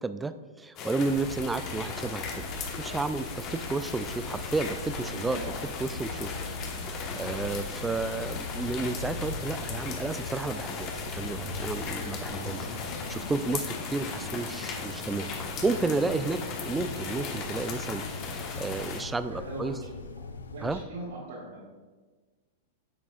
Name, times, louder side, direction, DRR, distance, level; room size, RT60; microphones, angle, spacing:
voice 1, 0.0-2.4 2.8-5.4 5.8-6.3 6.9-12.7 13.1-18.0 18.3-19.7 20.6-20.8, right 3 dB, 10° right, 12 dB, 0.4 m, -32 dB
sound 1, 0.8-19.0, left 4 dB, 35° left, 1.2 m, -37 dB
sound 2, 1.1-20.8, left 3 dB, 75° left, 0.5 m, -41 dB
voice 2, 5.1-5.5 6.4-6.5 7.1-7.3 19.3-19.7 20.5-21.6, right 2 dB, 70° right, -7 dB, 2.3 m, -40 dB
9.7 x 7.1 x 2.4 m, 1.4 s
figure-of-eight pair, 100°, 0 cm